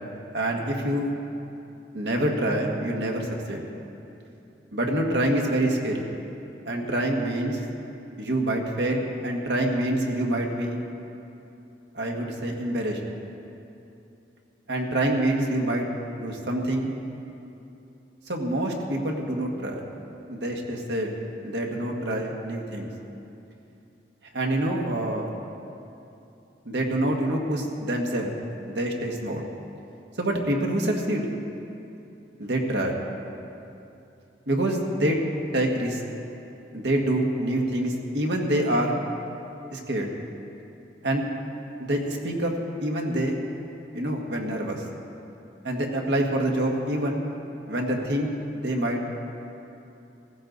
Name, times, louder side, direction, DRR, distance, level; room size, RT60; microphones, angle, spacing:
voice 1, 0.3-1.1 1.9-3.6 4.7-6.1 6.6-7.6 8.2-10.8 11.9-13.0 14.7-15.9 16.2-16.9 18.3-19.8 20.3-21.1 21.4-22.9 24.3-25.3 26.6-28.3 28.7-29.5 30.2-31.3 32.4-33.0 34.5-35.2 35.5-36.0 36.7-39.0 39.7-40.1 41.0-41.3 41.8-42.5 42.8-43.4 43.9-44.8 45.6-47.3 47.7-48.3 48.6-49.0, right 1 dB, 70° right, 1 dB, 1.6 m, -26 dB
16.0 x 15.0 x 4.0 m, 2.8 s
head